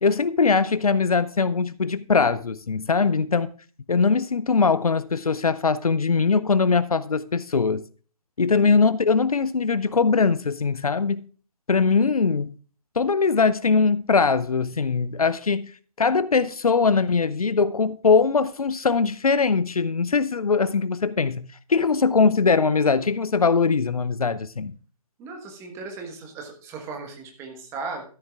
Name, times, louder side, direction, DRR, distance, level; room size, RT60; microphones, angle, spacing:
voice 1, 0.0-3.5 3.9-7.8 8.4-11.3 11.7-12.5 13.0-15.7 16.0-24.7, left 4 dB, 70° left, 0.5 m, -21 dB
voice 2, 25.2-28.0, right 4 dB, 15° right, 1.3 m, -37 dB
13.0 x 11.0 x 2.4 m
figure-of-eight pair, 135°, 19 cm